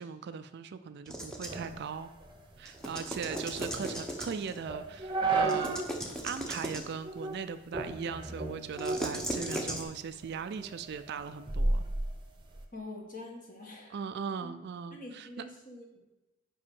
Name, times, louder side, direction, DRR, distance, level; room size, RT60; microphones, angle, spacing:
voice 1, 0.0-2.1 2.6-5.8 6.2-11.9 13.9-15.4, right 6 dB, 50° right, 11 dB, 0.3 m, -39 dB
sound 1, 1.1-1.7 2.7-4.6 5.4-7.0 8.7-9.8, right 1 dB, 5° left, 0.9 m, -37 dB
sound 2, 1.5-5.9 6.3-6.4 7.0-7.4 7.7-9.8 10.2-12.6, right 3 dB, 25° right, 0.9 m, -34 dB
voice 2, 12.7-14.0 14.4-14.6 14.9-16.0, left 2 dB, 40° left, 0 dB, 1.5 m, -45 dB
5.6 x 5.4 x 6.8 m, 1.0 s
head